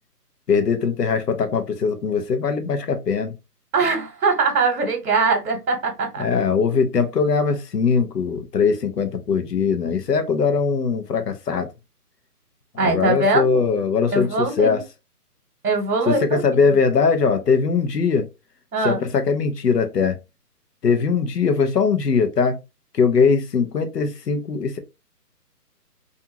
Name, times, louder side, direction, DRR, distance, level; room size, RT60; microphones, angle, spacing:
voice 1, 0.5-3.3 6.2-11.7 12.7-14.8 16.1-18.3 18.8-20.2 20.8-22.6 22.9-24.8, left 5 dB, 85° left, 0.8 m, -21 dB
voice 2, 3.7-6.3 12.8-13.7 14.1-14.8 15.6-16.6 18.7-19.0, right 3 dB, 65° right, 1.0 m, -22 dB
2.6 x 2.4 x 2.7 m
hypercardioid pair, 160°, 47 cm